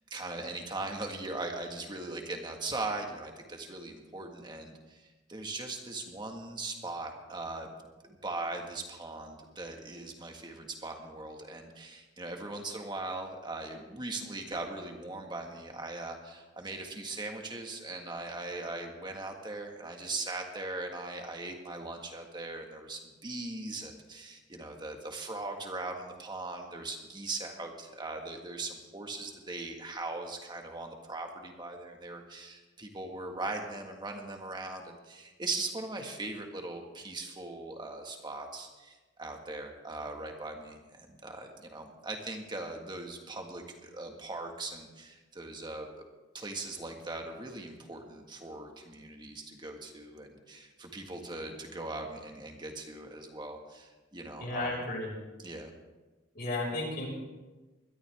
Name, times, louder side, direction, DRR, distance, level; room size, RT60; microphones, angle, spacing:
voice 1, 0.1-7.7 8.1-46.0 46.3-54.8 55.4-55.7, right 2 dB, 25° right, 3 dB, 1.8 m, -40 dB
voice 2, 54.4-55.1 56.3-57.0, left 2 dB, 55° left, -3 dB, 5.7 m, -33 dB
21.5 x 12.5 x 3.6 m, 1.2 s
head